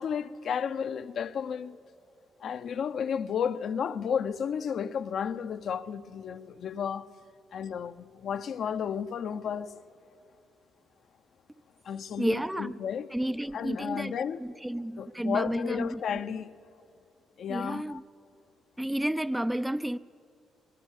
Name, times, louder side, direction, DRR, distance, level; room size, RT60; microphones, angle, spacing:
voice 1, 0.0-1.8 2.4-7.1 7.5-9.8 11.8-13.1 13.5-14.4 15.0-16.5 17.4-18.0, left 7 dB, 65° left, 0.8 m, -33 dB
voice 2, 12.2-12.7 13.1-16.0 17.5-18.0 18.8-20.0, right 1 dB, 5° right, 0.5 m, -31 dB
24.5 x 20.5 x 8.3 m
cardioid pair, 90°, 0 cm